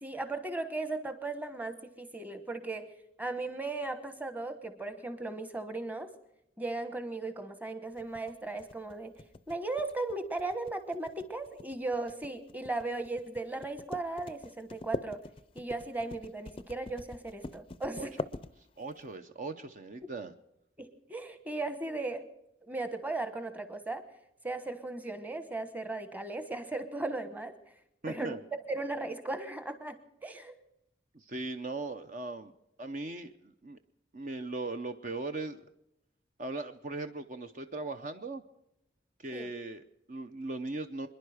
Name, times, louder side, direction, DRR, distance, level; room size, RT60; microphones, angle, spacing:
voice 1, 0.0-2.9 3.2-6.1 6.6-9.2 9.5-15.2 15.5-18.2 20.8-22.3 22.7-24.0 24.4-27.5 28.1-28.4 28.7-30.0 30.2-30.6 39.3-39.5, right 2 dB, 10° right, 9 dB, 1.1 m, -37 dB
sound 1, 8.0-19.0, left 2 dB, 30° left, 0.5 m, -43 dB
voice 2, 18.8-20.3 28.0-28.4 31.1-32.5 32.8-33.8 34.1-35.7 36.4-38.4 39.2-41.1, right 2 dB, 45° right, 8 dB, 0.7 m, -39 dB
27.0 x 10.5 x 5.0 m, 0.85 s
head